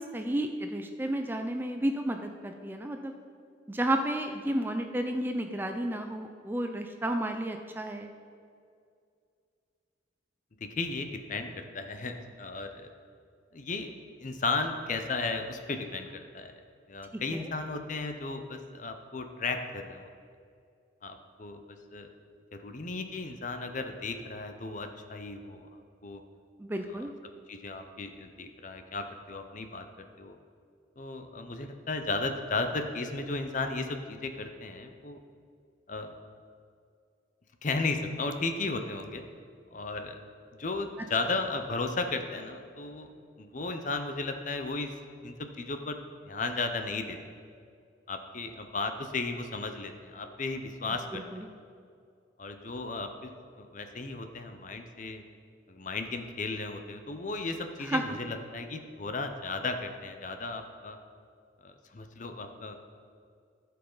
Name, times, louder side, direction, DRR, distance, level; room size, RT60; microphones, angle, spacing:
voice 1, 0.0-3.1 3.7-8.1 17.1-17.4 26.6-27.1 51.1-51.5 57.9-58.0, right 1 dB, 10° right, 5 dB, 0.4 m, -32 dB
voice 2, 10.6-12.9 13.5-13.9 14.2-16.5 16.9-20.1 21.0-22.1 22.5-25.7 26.0-26.2 26.9-27.0 27.5-29.8 30.2-30.4 31.0-35.2 35.9-36.1 37.6-39.2 39.7-40.2 40.6-43.1 43.4-44.9 45.2-46.0 46.3-47.2 48.1-51.2 52.4-53.3 53.6-55.2 55.7-61.0 61.6-62.8, left 3 dB, 45° left, 7 dB, 0.6 m, -35 dB
14.0 x 5.6 x 3.9 m, 2.3 s
head